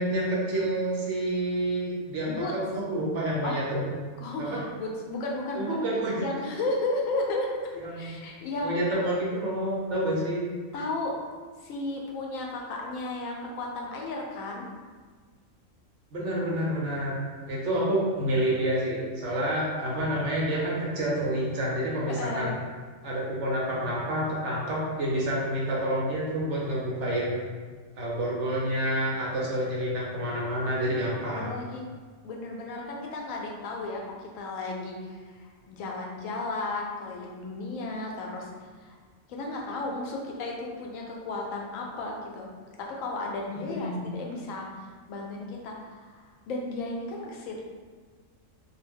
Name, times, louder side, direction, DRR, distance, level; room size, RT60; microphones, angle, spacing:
voice 1, 0.0-3.9 4.4-4.6 5.5-6.2 7.8-8.1 8.6-10.4 16.1-17.2 17.5-22.5 23.0-27.5 28.0-31.5 43.7-44.1, right 1 dB, 65° right, -4 dB, 1.0 m, -28 dB
voice 2, 4.2-5.8 6.2-7.6 7.9-9.1 10.7-11.2 11.6-14.7 22.1-22.5 31.3-31.9 32.2-38.5 38.8-39.0 39.3-42.5 42.8-47.6, left 2 dB, 85° left, -1 dB, 1.0 m, -34 dB
2.5 x 2.1 x 3.3 m, 1.5 s
omnidirectional pair, 1.4 m